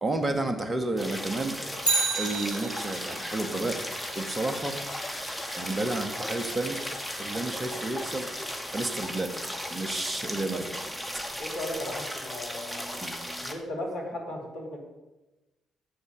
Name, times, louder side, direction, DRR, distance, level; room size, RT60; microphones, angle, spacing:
voice 1, 0.0-1.5 2.2-3.8 4.2-4.8 5.5-6.8 7.2-8.3 8.7-9.4 9.7-10.7 13.0-13.2, right 2 dB, 25° right, 6 dB, 1.9 m, -31 dB
sound 1, 0.7-8.6, left 2 dB, 45° left, 4.9 m, -45 dB
sound 2, 1.0-13.5, equal, ahead, 2.1 m, -36 dB
Bicycle, 1.8-3.2 11.5-11.6, right 4 dB, 90° left, 1.9 m, -29 dB
voice 2, 11.4-13.0 13.4-14.8, left 1 dB, 70° left, -4 dB, 3.3 m, -36 dB
14.0 x 8.5 x 5.4 m, 1.1 s
figure-of-eight pair, 40°, 0 cm